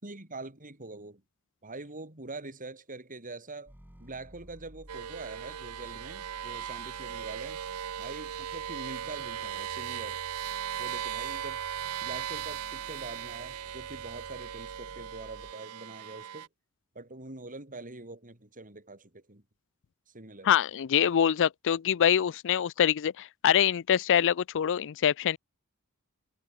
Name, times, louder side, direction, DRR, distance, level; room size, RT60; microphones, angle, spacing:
voice 1, 0.0-1.2 1.6-3.7 4.0-7.6 8.0-10.2 10.8-11.6 12.0-16.5 16.9-19.4 20.1-20.5, right 2 dB, 40° right, 4.9 m, -44 dB
sound 1, 3.7-15.5, equal, 10° right, 1.7 m, -53 dB
sound 2, 4.9-16.5, right 9 dB, 80° right, 0.6 m, -38 dB
voice 2, 20.4-25.4, left 9 dB, 60° left, 0.4 m, -25 dB
head